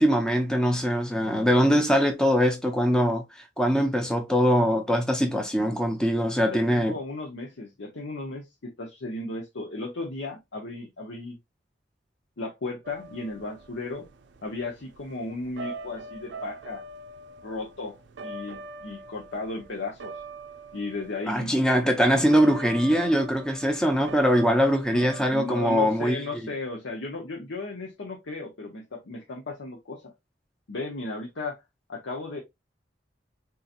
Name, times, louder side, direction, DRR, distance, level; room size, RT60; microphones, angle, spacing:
voice 1, 0.0-7.0 21.3-26.2, equal, 5° left, 0.5 m, -22 dB
voice 2, 6.5-11.4 12.4-14.1 14.4-16.8 17.4-18.0 18.2-20.2 20.7-21.5 24.9-30.1 30.7-31.6 31.9-32.4, left 2 dB, 85° left, 0.8 m, -35 dB
sound 1, 12.8-25.3, right 2 dB, 70° right, 0.4 m, -42 dB
3.9 x 2.8 x 2.4 m
head